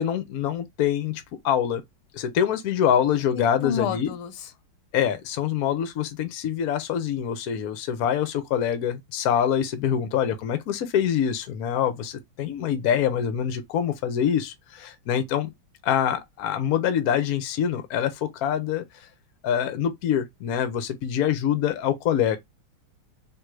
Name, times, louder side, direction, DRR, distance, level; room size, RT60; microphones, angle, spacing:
voice 1, 0.0-1.8 2.1-4.1 4.9-15.5 15.8-18.8 19.4-22.4, left 9 dB, 60° left, 1.0 m, -25 dB
voice 2, 3.3-4.5, left 9 dB, 85° left, 1.6 m, -30 dB
3.6 x 2.7 x 4.6 m
omnidirectional pair, 2.4 m